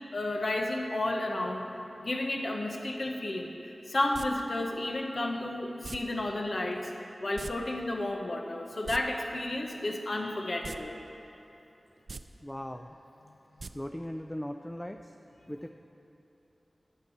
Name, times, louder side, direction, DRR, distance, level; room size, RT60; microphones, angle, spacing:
voice 1, 0.1-1.6 2.0-3.5 3.9-6.9 7.2-11.0, left 1 dB, 60° left, 2 dB, 1.0 m, -32 dB
sound 1, 4.1-4.3 5.8-6.0 7.4-7.5 7.8-7.9 8.7-9.0 10.6-10.8 11.2-11.3 12.0-12.2 13.6-13.7 14.0-14.1, right 4 dB, 75° right, 0.3 m, -40 dB
voice 2, 12.4-13.0 13.7-15.1 15.5-15.8, equal, 15° left, 6 dB, 0.4 m, -39 dB
9.7 x 6.0 x 7.1 m, 2.9 s
cardioid pair, 40°, 0 cm